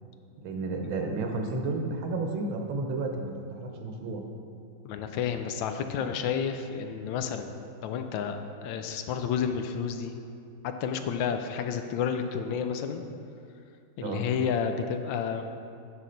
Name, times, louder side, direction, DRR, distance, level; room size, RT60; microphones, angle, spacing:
voice 1, 0.4-4.2 14.0-14.2, right 3 dB, 80° right, 3 dB, 1.7 m, -32 dB
voice 2, 4.8-7.5 7.8-10.2 10.6-13.0 14.0-15.5, left 7 dB, 75° left, 7 dB, 1.3 m, -31 dB
9.7 x 6.3 x 3.9 m, 2.5 s
omnidirectional pair, 2.2 m